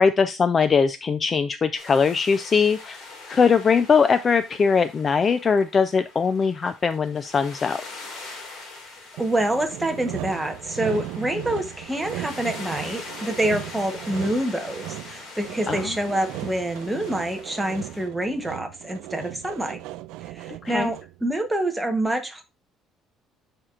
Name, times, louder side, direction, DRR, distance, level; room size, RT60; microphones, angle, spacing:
voice 1, 0.0-3.0 3.3-7.8 15.7-15.9 20.6-20.9, left 5 dB, 25° left, 11 dB, 0.3 m, -21 dB
sound 1, 1.8-18.1, left 3 dB, 45° left, 2.1 m, -42 dB
voice 2, 9.2-19.8 20.3-22.4, right 1 dB, 5° right, 4 dB, 0.9 m, -27 dB
Sawing, 9.2-21.2, right 15 dB, 90° right, 0.4 m, -37 dB
11.5 x 4.4 x 2.4 m, 0.25 s
cardioid pair, 180°, 0 cm